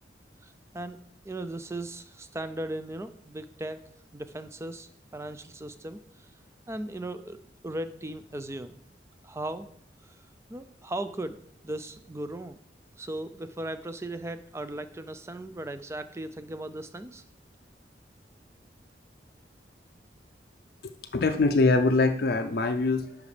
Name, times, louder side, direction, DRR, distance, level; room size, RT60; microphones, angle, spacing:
voice 1, 0.4-1.0 1.2-3.8 4.1-6.3 6.7-7.4 7.6-8.8 9.2-9.7 10.5-11.4 11.6-12.6 13.0-17.2, right 1 dB, 15° right, 11 dB, 0.4 m, -37 dB
voice 2, 20.8-23.2, left 3 dB, 55° left, 5 dB, 0.5 m, -24 dB
10.5 x 5.0 x 3.3 m, 0.66 s
head